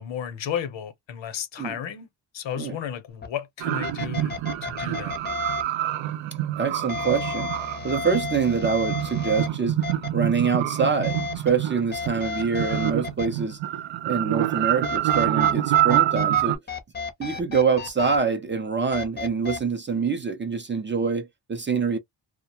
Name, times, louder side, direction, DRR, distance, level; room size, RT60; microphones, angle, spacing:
voice 1, 0.0-2.1 2.3-5.2, left 9 dB, 75° left, 0.8 m, -33 dB
sound 1, 3.2-3.3 3.8-5.6 6.9-9.5 9.8-10.1 11.0-11.5 11.9-13.3 14.8-16.4 16.7-18.2 18.9-19.6, left 5 dB, 25° left, 0.6 m, -32 dB
sound 2, 3.6-16.6, right 13 dB, 90° right, 0.6 m, -26 dB
voice 2, 6.6-7.5 7.8-9.8 10.1-13.6 14.0-16.6 17.2-22.0, right 5 dB, 25° right, 0.4 m, -25 dB
2.4 x 2.1 x 2.8 m
wide cardioid pair, 145°, 45 cm